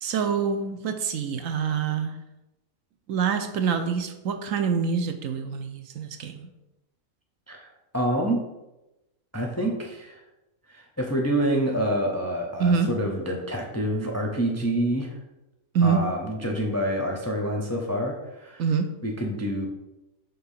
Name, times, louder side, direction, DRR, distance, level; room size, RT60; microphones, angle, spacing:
voice 1, 0.0-2.2 3.1-6.5 12.6-12.9 15.7-16.0 18.6-18.9, right 6 dB, 70° right, 1.0 m, -25 dB
voice 2, 7.5-8.4 9.3-10.2 10.7-15.2 15.8-18.6 19.0-19.7, right 1 dB, 20° left, 0.5 m, -27 dB
5.7 x 3.8 x 5.6 m
omnidirectional pair, 1.5 m